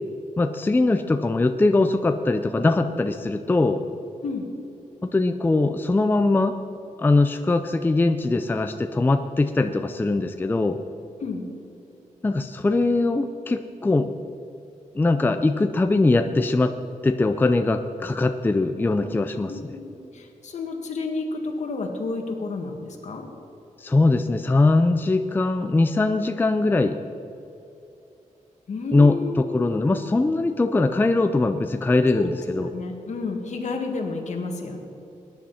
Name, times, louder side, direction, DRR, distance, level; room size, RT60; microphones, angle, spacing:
voice 1, 0.4-3.8 5.0-6.6 7.0-10.8 12.2-14.1 14.9-16.7 17.0-19.5 23.8-27.0 28.9-32.7, left 2 dB, 15° left, 8 dB, 0.4 m, -21 dB
voice 2, 19.5-23.3 28.7-29.8 32.1-32.3 32.6-34.8, left 3 dB, 65° left, 2 dB, 1.9 m, -31 dB
20.5 x 10.0 x 4.2 m, 2.8 s
wide cardioid pair, 165°, 13 cm